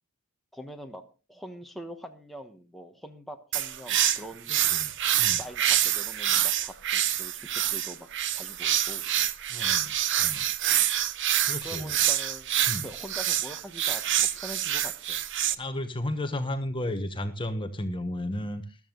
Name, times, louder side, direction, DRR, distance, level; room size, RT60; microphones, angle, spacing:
voice 1, 0.5-1.0 1.3-4.7 5.3-9.1 11.6-12.5 12.8-15.2 15.5-15.6, equal, ahead, 3 dB, 1.2 m, -44 dB
sound 1, 3.5-15.5, right 11 dB, 55° right, 0.8 m, -26 dB
voice 2, 9.5-10.5 11.4-11.9 12.7-12.9 15.6-18.8, left 1 dB, 20° left, 8 dB, 1.2 m, -33 dB
14.0 x 12.5 x 3.9 m, 0.31 s
head